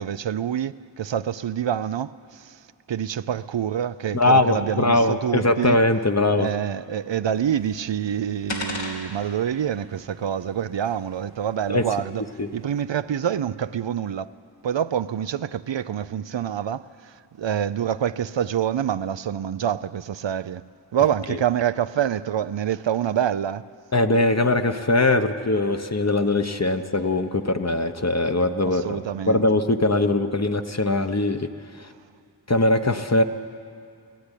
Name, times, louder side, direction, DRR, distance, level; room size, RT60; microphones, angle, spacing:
voice 1, 0.0-2.6 2.9-5.8 6.4-12.2 12.5-14.3 14.6-20.6 20.9-23.6 28.7-29.4, right 9 dB, 80° right, 0.5 m, -26 dB
voice 2, 4.1-6.5 11.7-11.9 12.4-12.5 21.3-21.4 23.9-29.0 29.3-31.5 31.8-31.9 32.5-33.2, left 2 dB, 35° left, 1.0 m, -21 dB
sound 1, 7.3-12.8, left 2 dB, 85° left, 3.2 m, -40 dB
16.0 x 16.0 x 10.0 m
wide cardioid pair, 55°, 44 cm